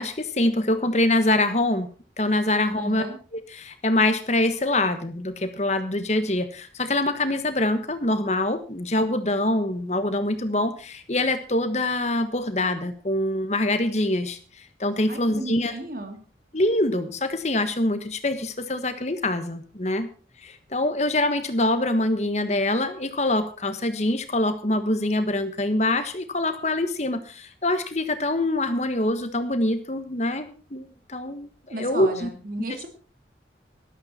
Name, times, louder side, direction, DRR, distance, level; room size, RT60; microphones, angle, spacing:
voice 1, 0.0-1.9 2.2-3.0 3.3-14.4 14.8-15.7 16.5-20.1 20.4-31.5 31.8-32.3, left 1 dB, 40° left, 10 dB, 1.4 m, -24 dB
voice 2, 2.7-3.2 15.1-16.2 31.7-32.9, right 1 dB, 50° right, 5 dB, 2.5 m, -34 dB
12.5 x 12.0 x 4.4 m, 0.37 s
head